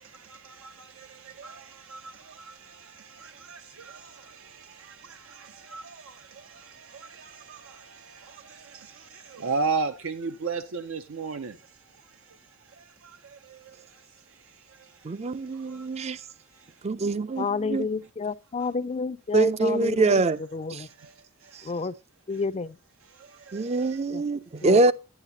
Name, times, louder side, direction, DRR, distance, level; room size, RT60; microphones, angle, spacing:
voice 1, 0.0-16.9 20.9-21.7 23.1-24.0 24.6-24.7, right 4 dB, 80° right, 0.5 m, -38 dB
voice 2, 15.0-16.2 16.8-17.9 19.3-20.4 20.7-20.8 23.5-24.9, right 3 dB, 30° right, 0.4 m, -24 dB
voice 3, 17.4-20.9 21.6-21.9 22.3-22.8 24.1-24.2 24.6-24.8, left 4 dB, 30° left, 0.4 m, -30 dB
9.9 x 9.8 x 2.7 m
head